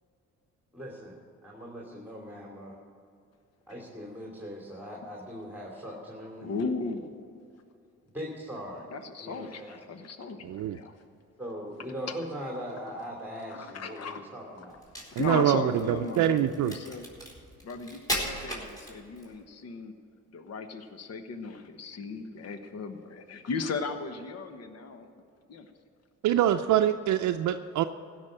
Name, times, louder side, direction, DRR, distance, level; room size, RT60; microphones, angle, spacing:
voice 1, 0.7-2.8 3.7-6.5 8.1-8.9 9.2-9.8 11.4-14.8, equal, 5° right, -3 dB, 2.8 m, -40 dB
voice 2, 6.4-7.4 8.9-10.9 12.1-12.2 13.5-14.2 14.6-14.7 15.1-17.1 17.6-19.9 20.3-25.2 25.5-25.7, left 4 dB, 55° left, 7 dB, 1.2 m, -36 dB
voice 3, 10.4-10.8 15.2-16.7 26.2-27.8, right 11 dB, 70° right, 6 dB, 0.6 m, -25 dB
Crack, 14.7-19.4, right 1 dB, 10° left, 4.2 m, -37 dB
16.5 x 6.3 x 8.9 m, 2.4 s
cardioid pair, 90°, 30 cm